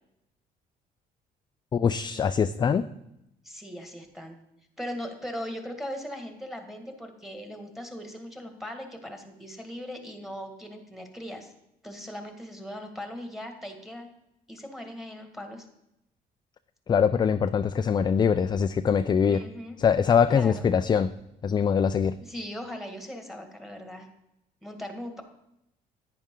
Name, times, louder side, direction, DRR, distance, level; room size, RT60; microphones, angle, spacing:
voice 1, 1.7-2.9 16.9-19.4 19.8-21.1 21.4-22.2, left 7 dB, 25° left, 10 dB, 0.4 m, -23 dB
voice 2, 3.4-4.4 4.8-11.5 11.8-14.1 14.5-15.7 19.3-19.8 20.3-20.7 22.2-24.1 24.6-25.2, equal, ahead, 5 dB, 1.8 m, -39 dB
10.5 x 9.5 x 3.8 m, 0.82 s
cardioid pair, 110°, 17 cm